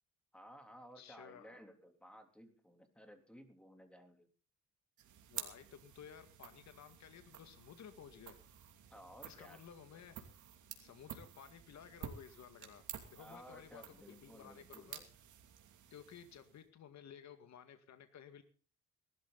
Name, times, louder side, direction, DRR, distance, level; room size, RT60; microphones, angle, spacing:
voice 1, 0.3-4.3 8.9-9.6 13.2-15.1, equal, 5° left, 5 dB, 3.4 m, -57 dB
voice 2, 1.0-1.6 5.3-8.4 9.3-10.2 10.8-15.0 15.9-18.4, left 8 dB, 65° left, 8 dB, 2.0 m, -55 dB
sound 1, 5.0-16.7, right 9 dB, 75° right, 2.8 m, -52 dB
19.5 x 13.0 x 4.1 m, 0.39 s
cardioid pair, 90°, 30 cm